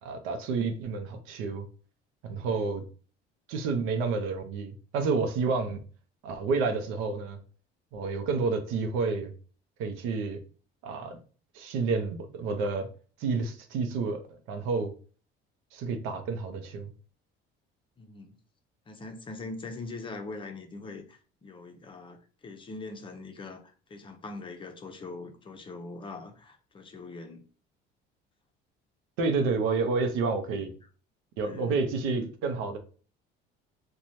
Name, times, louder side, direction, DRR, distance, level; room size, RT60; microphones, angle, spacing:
voice 1, 0.0-1.7 2.2-2.8 3.5-5.8 6.2-7.4 7.9-9.3 9.8-10.4 10.8-11.2 11.5-12.9 13.2-14.2 14.5-14.9 15.7-16.9 29.2-30.7 31.4-32.8, right 4 dB, 85° right, 7 dB, 0.6 m, -29 dB
voice 2, 18.0-18.3 18.9-22.2 22.4-27.5 30.6-30.7 31.4-31.7, left 3 dB, 25° left, 5 dB, 0.5 m, -42 dB
3.0 x 2.2 x 2.6 m, 0.39 s
cardioid pair, 110°, 21 cm